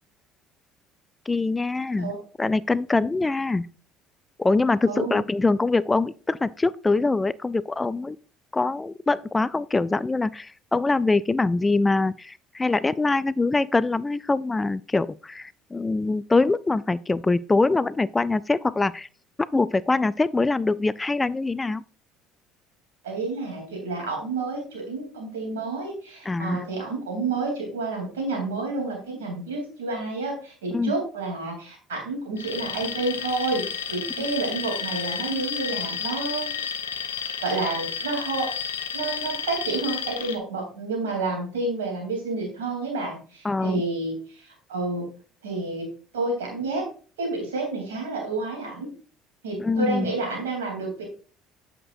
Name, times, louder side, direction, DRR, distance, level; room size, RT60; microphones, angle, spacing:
voice 1, 1.3-2.1 2.4-3.7 4.4-8.2 8.5-19.1 19.5-21.8 26.3-26.7 30.7-30.9 43.4-43.8 49.6-50.1, left 3 dB, 20° left, 0.3 m, -23 dB
voice 2, 4.8-5.2 23.0-33.6 33.9-36.5 37.4-38.5 38.9-45.1 45.4-45.9 46.1-46.8 47.2-48.9 49.4-51.0, right 3 dB, 85° right, 3.2 m, -29 dB
Alarm, 32.4-40.4, left 7 dB, 85° left, 0.8 m, -31 dB
8.5 x 6.7 x 2.6 m
hypercardioid pair, 65°, 0 cm